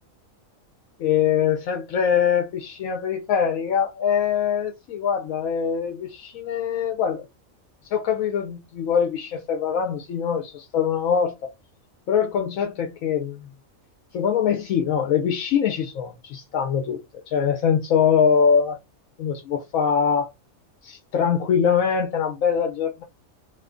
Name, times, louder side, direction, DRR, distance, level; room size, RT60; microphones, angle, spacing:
voice 1, 1.0-7.2 7.8-11.5 12.1-13.3 14.1-18.8 19.2-20.3 20.8-23.0, left 7 dB, 80° left, 1.1 m, -23 dB
2.6 x 2.6 x 3.5 m
omnidirectional pair, 1.4 m